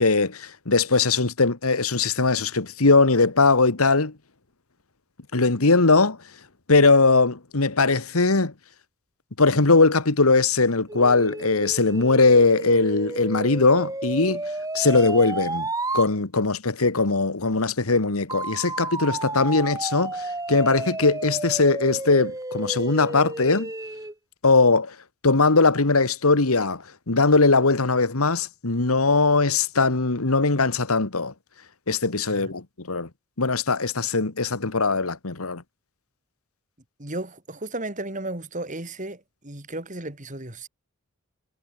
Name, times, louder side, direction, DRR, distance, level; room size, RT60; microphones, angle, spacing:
voice 1, 0.0-4.1 5.3-6.2 6.7-8.5 9.4-14.4 14.7-15.7 15.9-23.7 24.4-24.9 25.2-31.3 31.9-33.1 33.4-35.6, left 3 dB, 85° left, 1.7 m, -20 dB
sound 1, 10.9-16.1 18.3-24.1, right 2 dB, 15° right, 5.5 m, -32 dB
voice 2, 37.0-40.7, right 2 dB, 35° right, 3.2 m, -34 dB
head